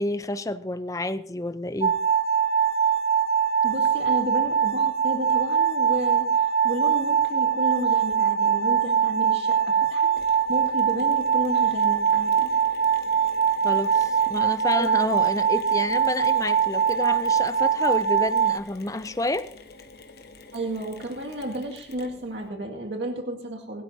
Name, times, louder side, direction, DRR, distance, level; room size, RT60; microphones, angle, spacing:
voice 1, 0.0-1.9 13.6-19.5, left 2 dB, 20° left, 0.6 m, -29 dB
sound 1, 1.8-18.6, right 7 dB, 35° right, 0.5 m, -22 dB
voice 2, 3.6-12.5 14.8-14.9 20.5-23.8, right 1 dB, 90° right, 2.1 m, -32 dB
Mechanisms, 10.2-22.5, left 3 dB, 60° left, 1.4 m, -47 dB
21.5 x 12.5 x 2.8 m
head